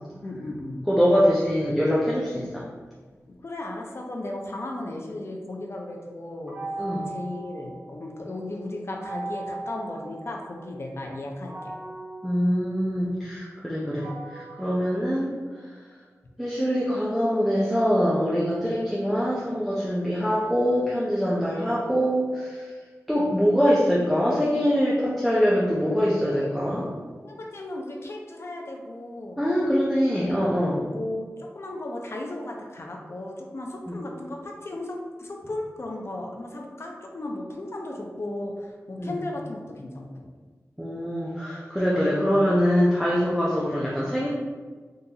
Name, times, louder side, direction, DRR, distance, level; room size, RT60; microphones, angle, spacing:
voice 1, 0.2-0.8 3.3-6.6 7.1-11.7 27.2-29.5 30.2-40.3, left 1 dB, 50° left, 0 dB, 0.5 m, -35 dB
voice 2, 0.9-2.6 6.8-7.1 12.2-15.3 16.4-22.7 23.1-26.9 29.4-30.9 33.9-34.0 39.0-39.1 40.8-44.3, equal, ahead, -6 dB, 0.5 m, -23 dB
sound 1, 6.5-8.3 9.0-10.8 11.5-15.7, right 2 dB, 25° right, 0.8 m, -39 dB
3.9 x 2.5 x 2.8 m, 1.4 s
wide cardioid pair, 85°, 6 cm